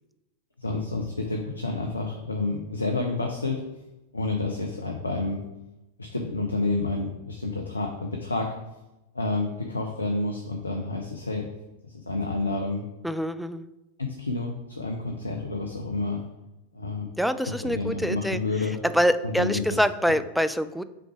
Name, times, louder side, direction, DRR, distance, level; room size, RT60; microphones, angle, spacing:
voice 1, 0.6-3.6 4.1-5.4 6.0-8.5 9.1-11.5 11.8-12.8 14.0-16.2 16.7-17.1 17.4-18.8 19.2-19.8, left 3 dB, 80° left, 2 dB, 0.6 m, -29 dB
voice 2, 13.0-13.7 17.2-18.4 18.8-20.8, equal, ahead, 12 dB, 0.3 m, -25 dB
5.9 x 3.9 x 4.7 m, 0.97 s
figure-of-eight pair, 90°, 0 cm